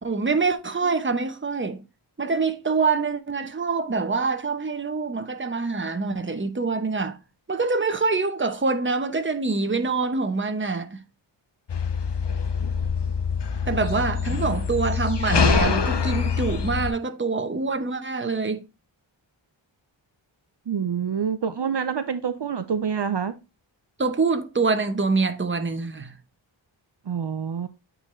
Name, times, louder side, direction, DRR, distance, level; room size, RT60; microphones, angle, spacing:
voice 1, 0.0-1.8 2.2-7.2 7.5-11.0 13.7-18.7 24.0-26.1, right 4 dB, 25° right, 0.9 m, -25 dB
sound 1, 11.7-16.9, left 5 dB, 60° left, 0.8 m, -24 dB
voice 2, 20.7-23.3 27.1-27.7, right 7 dB, 60° right, 0.7 m, -27 dB
8.9 x 4.0 x 3.1 m
wide cardioid pair, 70°, 48 cm